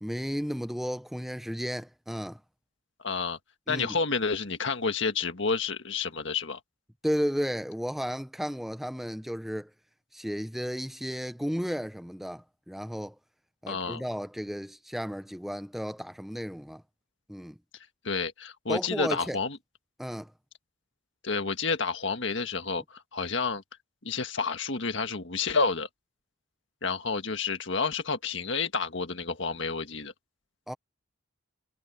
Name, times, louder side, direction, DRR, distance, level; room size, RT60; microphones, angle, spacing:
voice 1, 0.0-2.4 3.7-4.0 7.0-9.7 10.1-13.2 13.6-16.8 17.3-17.6 18.7-19.4 20.0-20.3 30.7-30.8, equal, ahead, 0.5 m, -33 dB
voice 2, 3.0-3.4 3.7-6.6 13.7-14.0 18.0-19.6 21.2-23.6 24.0-25.9 26.8-30.1, left 4 dB, 55° left, 1.8 m, -30 dB
head